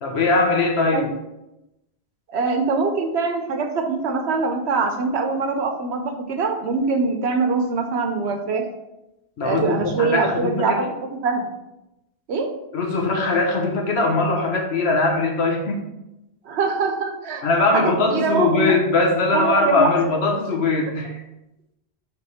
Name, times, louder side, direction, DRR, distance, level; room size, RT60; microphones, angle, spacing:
voice 1, 0.0-1.1 9.4-10.9 12.7-15.8 17.4-21.2, left 3 dB, 75° left, 1 dB, 1.3 m, -21 dB
voice 2, 2.3-8.7 9.4-10.8 11.2-11.5 12.3-12.6 16.4-17.4 17.7-18.8 19.3-19.9, right 4 dB, 90° right, 4 dB, 1.1 m, -23 dB
6.4 x 3.5 x 4.2 m, 0.92 s
omnidirectional pair, 1.1 m